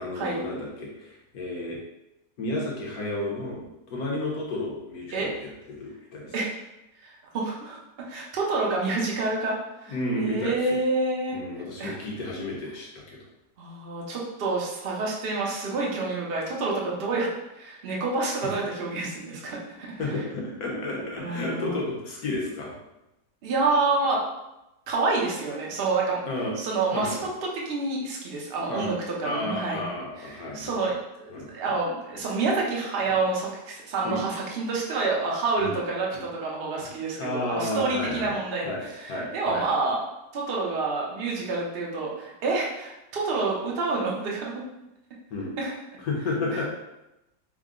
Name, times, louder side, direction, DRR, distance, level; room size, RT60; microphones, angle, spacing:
voice 1, 0.0-1.8 2.4-3.6 3.9-5.5 5.8-6.3 9.9-10.8 11.3-13.2 18.4-18.5 20.0-22.7 26.3-26.6 26.9-27.2 28.7-28.9 29.2-30.8 31.3-31.5 33.1-33.2 34.0-34.2 35.6-35.8 36.1-36.2 36.8-36.9 37.2-38.3 38.6-38.8 39.1-39.7 45.3-45.5 46.0-46.7, left 1 dB, 65° left, -3 dB, 1.3 m, -32 dB
voice 2, 7.0-7.8 8.1-12.0 13.6-17.3 17.5-19.9 21.2-21.8 23.4-24.2 24.9-26.2 26.6-27.3 27.5-29.9 30.2-30.9 31.2-38.6 39.0-40.0 40.3-44.6 45.6-45.8 46.5-46.6, right 3 dB, 55° right, -3 dB, 0.6 m, -28 dB
3.7 x 2.0 x 3.7 m, 0.93 s
omnidirectional pair, 1.8 m